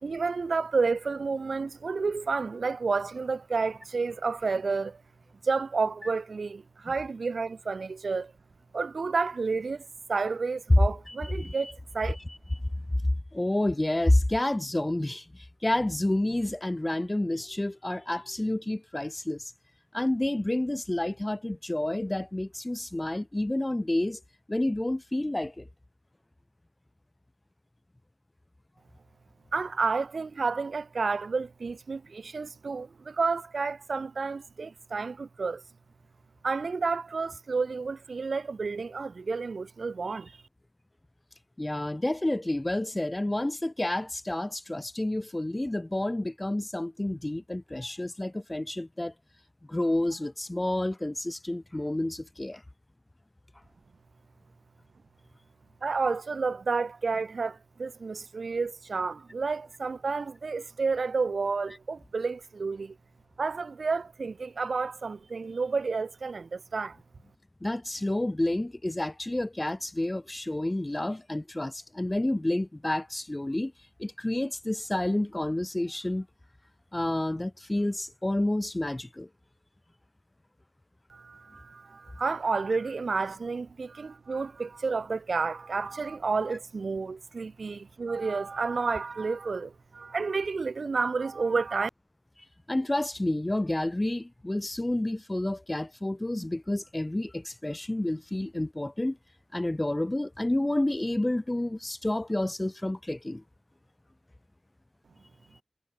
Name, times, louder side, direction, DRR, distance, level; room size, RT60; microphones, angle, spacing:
voice 1, 0.0-5.0 5.4-8.3 8.7-12.2 29.5-35.6 36.4-40.4 55.8-63.0 63.4-67.0 81.1-91.9, right 4 dB, 80° right, 2.3 m, -30 dB
voice 2, 11.1-11.7 13.0-19.5 19.9-24.2 24.5-25.7 41.6-49.1 49.7-52.6 67.6-73.7 74.0-76.3 76.9-79.3 92.7-99.2 99.5-103.4, left 1 dB, 20° left, 0.9 m, -29 dB
wide cardioid pair, 70°, 0 cm